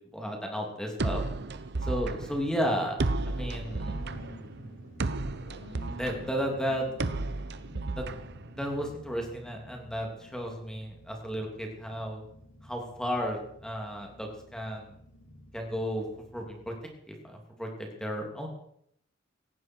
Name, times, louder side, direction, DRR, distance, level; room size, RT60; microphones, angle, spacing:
voice 1, 0.1-1.2 1.8-3.0 3.2-4.0 5.9-6.9 7.9-8.1 8.6-12.2 12.6-14.9 15.5-16.0 16.3-16.7 17.2-18.5, equal, 5° left, 1 dB, 3.0 m, -33 dB
sound 1, 1.0-8.9, right 2 dB, 55° right, 0.9 m, -33 dB
sound 2, 3.2-16.7, left 1 dB, 70° left, 5.1 m, -51 dB
18.0 x 15.5 x 4.7 m, 0.72 s
head